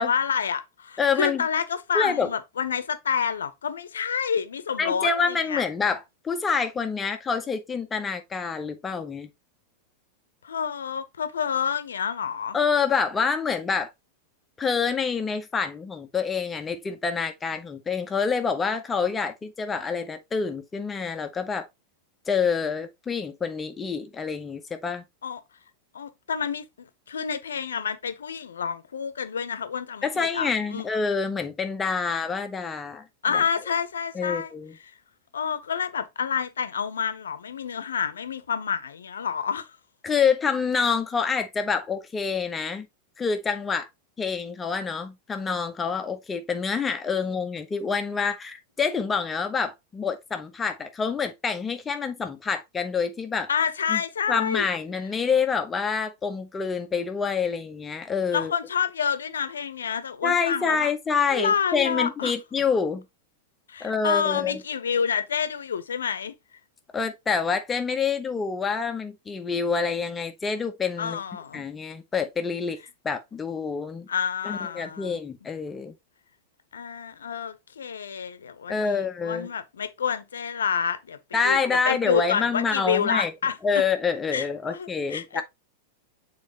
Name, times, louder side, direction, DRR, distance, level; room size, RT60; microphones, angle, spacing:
voice 1, 0.0-5.6 10.4-12.6 25.2-25.4 25.9-30.8 33.2-34.5 35.3-39.7 47.2-47.3 53.5-54.7 58.3-60.9 61.3-62.3 63.7-66.3 71.0-71.6 74.1-75.2 76.7-81.2 81.4-81.6 81.8-83.8 84.3-85.4, left 7 dB, 70° left, 0.9 m, -28 dB
voice 2, 1.0-1.4 1.9-2.3 4.8-9.3 12.5-13.9 14.6-21.7 22.3-25.0 30.0-33.0 33.3-33.4 34.1-34.7 40.0-42.9 43.2-43.9 44.2-53.5 53.9-54.0 54.3-58.5 60.2-63.0 63.8-64.6 66.9-71.2 71.5-72.8 73.0-74.1 74.4-75.9 78.7-79.5 81.3-83.3 83.6-85.4, left 5 dB, 15° left, 0.8 m, -27 dB
8.4 x 4.2 x 3.0 m
figure-of-eight pair, 90°, 0 cm